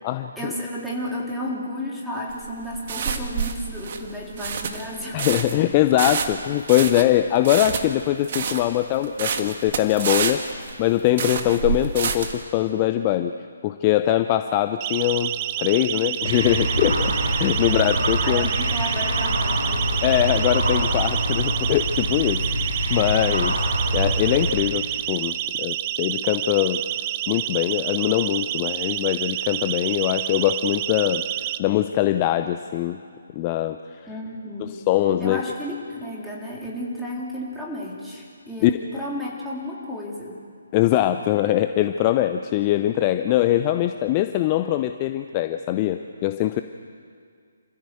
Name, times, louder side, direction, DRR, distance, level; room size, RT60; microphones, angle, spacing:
voice 1, 0.4-5.3 17.6-17.9 18.2-19.9 34.1-34.7 35.2-40.4, equal, ahead, -5 dB, 3.8 m, -32 dB
sound 1, 2.3-12.4, right 6 dB, 45° right, 1.8 m, -28 dB
voice 2, 5.1-10.4 10.8-13.3 13.6-15.3 15.6-18.5 20.0-22.4 22.9-23.6 23.9-26.8 27.3-31.2 31.6-33.0 33.4-33.8 34.7-35.4 38.6-38.7 40.7-46.6, left 13 dB, 25° left, 9 dB, 0.7 m, -22 dB
Siren, 14.8-31.6, right 13 dB, 25° right, 0.7 m, -29 dB
sound 2, 16.2-24.5, right 1 dB, 70° right, 7.9 m, -25 dB
27.5 x 15.0 x 8.1 m, 2.2 s
figure-of-eight pair, 140°, 0 cm